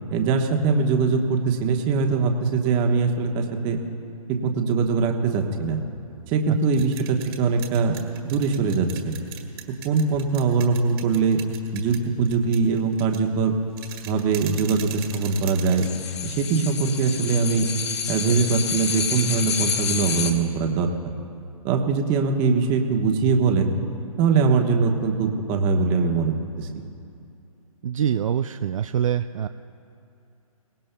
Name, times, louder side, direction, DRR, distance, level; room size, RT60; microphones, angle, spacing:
voice 1, 0.1-3.8 4.3-5.8 6.3-8.0 8.2-9.1 9.8-11.4 11.7-13.5 14.1-15.9 16.2-17.7 18.1-21.1 21.6-23.7 24.2-26.8, right 5 dB, 25° right, 3 dB, 1.2 m, -22 dB
sound 1, 6.5-16.9, right 10 dB, 40° right, 1.9 m, -41 dB
sound 2, 15.8-20.3, left 7 dB, 50° left, 1.4 m, -28 dB
voice 2, 27.8-29.5, right 9 dB, 60° right, 9 dB, 0.4 m, -24 dB
23.0 x 18.5 x 2.3 m, 2.6 s
hypercardioid pair, 140°, 19 cm